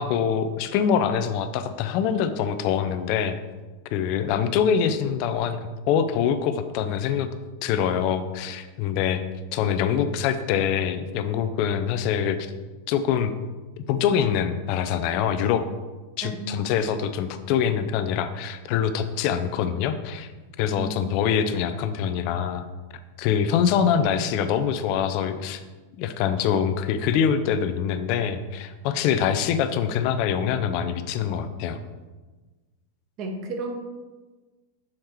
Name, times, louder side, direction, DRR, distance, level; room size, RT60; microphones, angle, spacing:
voice 1, 0.0-3.4 3.9-5.6 5.9-7.3 7.6-9.2 9.5-12.5 12.9-13.3 13.9-15.6 16.2-20.3 20.6-22.6 23.2-25.6 26.0-31.8, left 8 dB, 45° left, 11 dB, 0.4 m, -24 dB
voice 2, 16.2-16.6 20.8-21.0 33.2-33.7, right 3 dB, 35° right, 3 dB, 1.0 m, -32 dB
7.1 x 4.3 x 3.2 m, 1.3 s
figure-of-eight pair, 90°, 0 cm